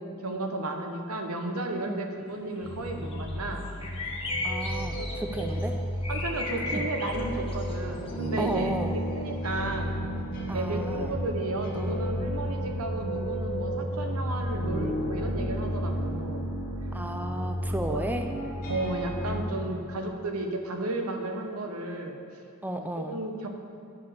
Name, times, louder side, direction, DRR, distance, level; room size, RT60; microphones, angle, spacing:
voice 1, 0.0-3.7 4.9-5.1 5.5-5.6 6.1-10.0 10.5-16.5 17.9-18.0 18.7-22.2 22.7-23.5, right 2 dB, 85° right, 4 dB, 1.0 m, -33 dB
sound 1, 2.6-19.6, equal, 45° left, 1.8 m, -32 dB
sound 2, 3.1-3.3 3.6-5.6 6.0-7.2 7.5-7.7 8.1-8.6, left 2 dB, 25° left, 1.4 m, -35 dB
voice 2, 4.4-5.8 6.7-6.8 8.4-9.0 10.5-11.2 11.8-12.0 16.9-18.3 22.6-23.2, right 1 dB, 10° right, 5 dB, 0.4 m, -33 dB
10.5 x 5.0 x 6.6 m, 2.5 s
head